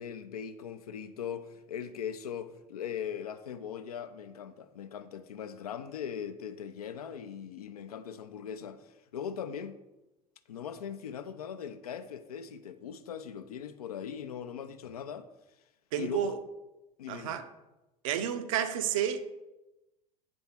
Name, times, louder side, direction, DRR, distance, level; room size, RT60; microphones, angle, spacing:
voice 1, 0.0-9.8 10.5-15.3 16.0-16.4 17.0-17.4, left 8 dB, 70° left, 0.4 m, -40 dB
voice 2, 15.9-16.4 17.1-17.5 18.0-19.2, right 9 dB, 60° right, 0.6 m, -30 dB
5.2 x 3.6 x 5.6 m
figure-of-eight pair, 75°, 20 cm